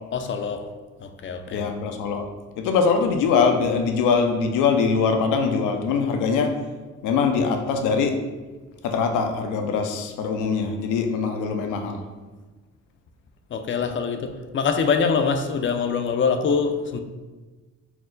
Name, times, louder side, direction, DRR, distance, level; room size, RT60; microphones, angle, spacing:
voice 1, 0.1-0.6 1.0-1.6 13.5-17.0, left 5 dB, 40° left, 7 dB, 0.4 m, -24 dB
voice 2, 1.5-2.3 2.6-6.6 7.0-8.2 8.8-12.0, left 5 dB, 90° left, 5 dB, 0.5 m, -22 dB
4.3 x 2.1 x 3.8 m, 1.3 s
cardioid pair, 90°, 30 cm